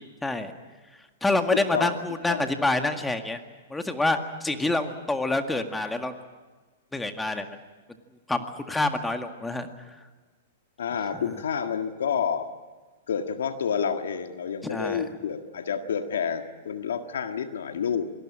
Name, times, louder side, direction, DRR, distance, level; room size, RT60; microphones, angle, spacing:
voice 1, 0.2-0.5 1.2-3.4 3.7-6.1 6.9-7.5 8.3-9.7 11.1-11.2 14.6-15.0, left 2 dB, 5° left, 6 dB, 1.9 m, -27 dB
voice 2, 1.5-2.0 2.3-2.4 10.8-12.5 13.1-18.1, left 7 dB, 75° left, 7 dB, 1.7 m, -29 dB
26.5 x 19.0 x 8.8 m, 1.3 s
hypercardioid pair, 110°, 0 cm